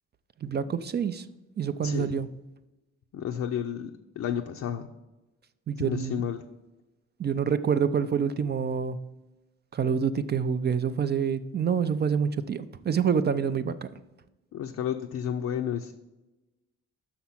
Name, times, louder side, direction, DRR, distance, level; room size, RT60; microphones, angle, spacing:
voice 1, 0.4-1.2 1.6-2.3 5.7-6.2 7.2-9.0 9.7-13.9, right 7 dB, 35° right, 12 dB, 0.4 m, -27 dB
voice 2, 3.1-4.9 5.8-6.4 14.5-15.9, left 9 dB, 60° left, 4 dB, 0.5 m, -31 dB
6.0 x 5.8 x 5.8 m, 1.1 s
cardioid pair, 90°, 30 cm